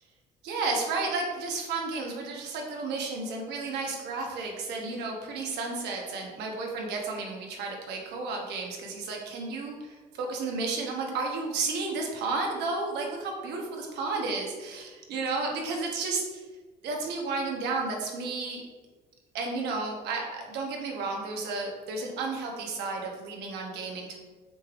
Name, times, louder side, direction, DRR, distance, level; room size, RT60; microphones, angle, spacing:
voice 1, 0.4-16.4 16.8-18.6 19.3-24.2, right 3 dB, 80° right, 0 dB, 1.0 m, -32 dB
6.4 x 3.3 x 2.5 m, 1.3 s
cardioid pair, 110°, 17 cm